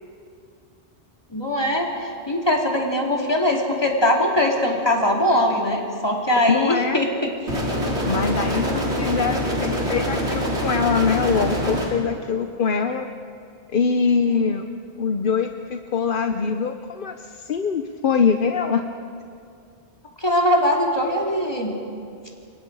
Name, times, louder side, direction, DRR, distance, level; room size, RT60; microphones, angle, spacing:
voice 1, 1.3-7.3 20.2-21.7, left 1 dB, 25° left, -1 dB, 2.9 m, -21 dB
voice 2, 6.5-7.0 8.0-13.1 13.7-14.7 15.0-18.9, left 5 dB, 55° left, 7 dB, 0.9 m, -23 dB
sound 1, 7.5-11.9, equal, 85° right, 3.8 m, -24 dB
29.0 x 23.5 x 4.8 m, 2.4 s
omnidirectional pair, 1.1 m